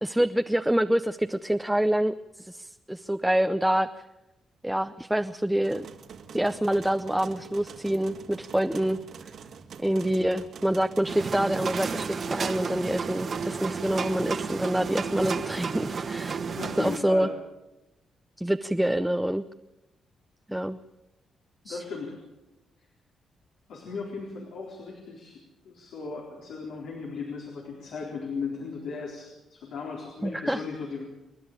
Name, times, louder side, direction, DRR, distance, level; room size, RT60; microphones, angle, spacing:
voice 1, 0.0-3.9 4.6-5.9 6.3-9.0 9.8-16.4 16.8-17.3 18.4-19.4 20.5-20.8 21.7-21.8 30.2-30.6, right 1 dB, 5° right, 8 dB, 0.6 m, -26 dB
sound 1, 5.6-14.5, right 6 dB, 70° right, 2.1 m, -45 dB
sound 2, 11.1-17.0, right 5 dB, 50° right, 1.4 m, -32 dB
voice 2, 16.6-17.3 21.6-22.2 23.7-31.0, left 4 dB, 85° left, -1 dB, 4.2 m, -37 dB
28.5 x 11.0 x 8.8 m, 0.98 s
cardioid pair, 95°, 0 cm